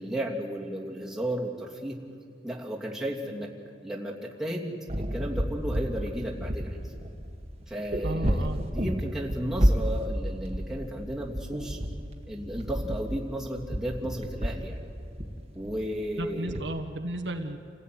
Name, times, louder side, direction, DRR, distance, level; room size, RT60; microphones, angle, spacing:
voice 1, 0.0-2.0 2.4-3.5 3.8-6.8 7.7-8.5 8.7-11.8 12.3-14.8 15.5-16.6, right 1 dB, ahead, -4 dB, 2.9 m, -34 dB
sound 1, 4.9-16.6, equal, 35° right, 1.9 m, -31 dB
voice 2, 8.0-8.6 16.2-17.6, right 1 dB, 75° right, 5 dB, 1.4 m, -33 dB
28.5 x 16.5 x 9.5 m, 2.4 s
head